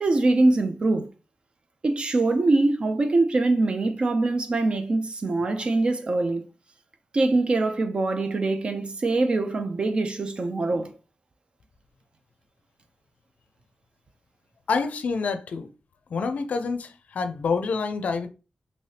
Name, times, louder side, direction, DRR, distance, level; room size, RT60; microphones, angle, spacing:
voice 1, 0.0-1.1 1.8-6.5 7.1-10.9, right 2 dB, 40° right, 0.4 m, -23 dB
voice 2, 14.7-15.7 16.1-18.3, left 4 dB, 70° left, 0.4 m, -27 dB
3.3 x 2.7 x 2.7 m
wide cardioid pair, 120°, 3 cm